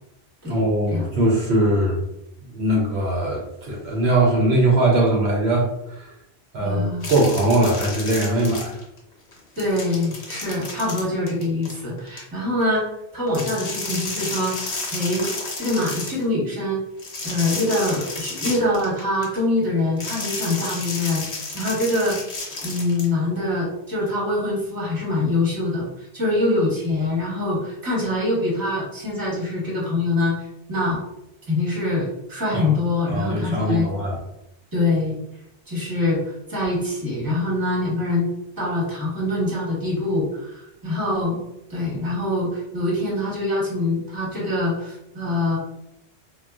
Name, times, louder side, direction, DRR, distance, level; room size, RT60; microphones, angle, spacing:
voice 1, 0.5-2.0 2.5-6.1 6.5-8.8 32.5-32.7 33.1-34.2, right 1 dB, 70° right, -2 dB, 0.9 m, -21 dB
voice 2, 6.6-7.1 9.6-12.9 13.1-15.3 15.6-16.8 17.2-21.3 21.5-22.2 22.6-31.0 31.5-33.9 34.7-35.2 35.7-38.3 38.6-41.4 41.7-45.6, left 2 dB, 20° right, -5 dB, 1.0 m, -24 dB
sound 1, 7.0-9.0 9.3-12.2 13.3-16.2 17.0-19.4 20.0-23.1, left 3 dB, 65° left, 1.0 m, -32 dB
3.7 x 2.2 x 2.3 m, 0.83 s
omnidirectional pair, 1.1 m